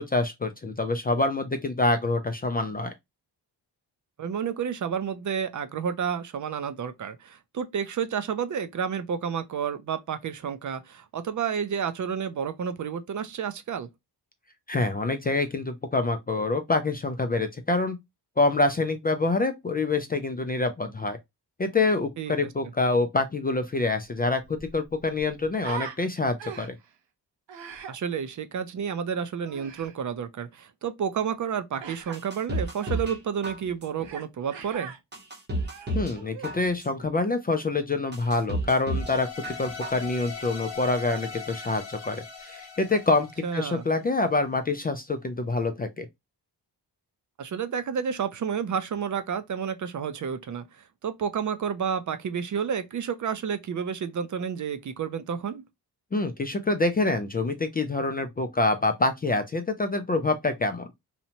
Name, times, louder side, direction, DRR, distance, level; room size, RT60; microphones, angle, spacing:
voice 1, 0.0-2.9 14.7-18.0 18.4-21.2 21.6-26.7 35.9-39.3 39.6-46.1 56.1-60.9, left 3 dB, 25° left, 0.3 m, -26 dB
voice 2, 4.2-13.9 22.2-22.3 27.9-34.9 43.4-43.9 47.4-55.6, right 7 dB, 45° right, 0.4 m, -30 dB
Human voice, 24.0-24.1 24.4-26.0 26.4-26.9 27.5-28.0 29.4-29.9 31.8-32.2 32.8-33.0 34.0-34.3 34.5-35.0 35.5-36.6, right 7 dB, 85° right, 0.7 m, -41 dB
sound 1, 32.1-33.2 33.4-34.1 34.6-34.7 35.1-36.2 36.4-37.1 37.6-37.7 38.1-39.1 39.4-40.1 40.4-40.5, right 1 dB, 25° right, 0.8 m, -31 dB
sound 2, 38.9-44.1, left 6 dB, 80° left, 1.0 m, -40 dB
2.7 x 2.1 x 2.8 m
cardioid pair, 90°, 42 cm